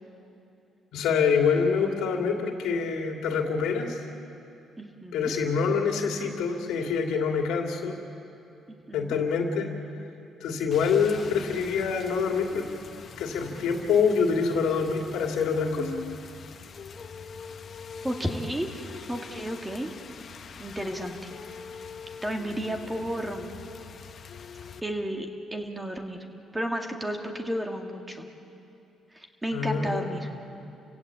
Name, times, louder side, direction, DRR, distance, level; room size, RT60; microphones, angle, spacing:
voice 1, 0.9-4.0 5.1-8.0 8.9-9.7 10.4-12.6 13.2-15.9 29.5-30.1, left 5 dB, 90° left, 3 dB, 2.8 m, -26 dB
voice 2, 4.8-5.3 8.9-9.2 18.0-19.9 20.6-21.2 22.2-23.5 24.8-26.3 26.5-28.3 29.1-30.3, equal, 10° right, 3 dB, 2.2 m, -32 dB
Rain, 10.7-24.8, left 6 dB, 45° left, 1.1 m, -43 dB
29.5 x 16.5 x 8.5 m, 2.7 s
cardioid pair, 115°, 0 cm